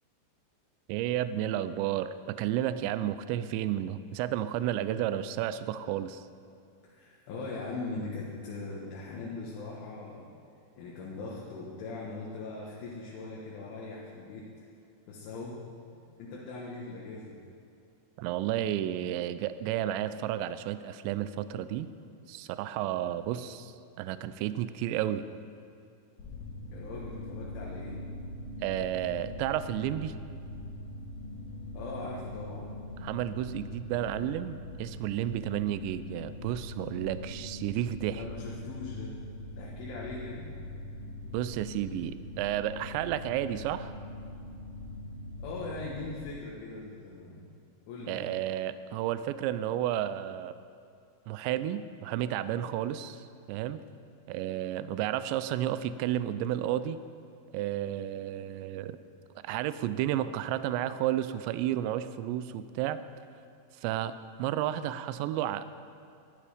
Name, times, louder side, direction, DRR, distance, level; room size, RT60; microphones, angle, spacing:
voice 1, 0.9-6.3 18.2-21.9 22.3-25.2 28.6-30.1 33.0-38.2 41.3-43.9 48.1-50.6 51.3-53.8 54.3-57.0 57.5-59.0 59.4-63.0 63.8-65.7, right 12 dB, 85° right, 13 dB, 2.6 m, -32 dB
voice 2, 6.8-10.3 10.8-14.5 15.1-15.6 16.0-17.4 26.7-28.0 31.7-32.7 38.1-39.2 39.5-40.5 45.4-47.5 47.9-48.3, left 3 dB, 75° left, -5 dB, 4.1 m, -40 dB
sound 1, 26.2-46.1, left 1 dB, 55° left, 3.9 m, -42 dB
21.5 x 12.0 x 5.1 m, 2.6 s
omnidirectional pair, 5.7 m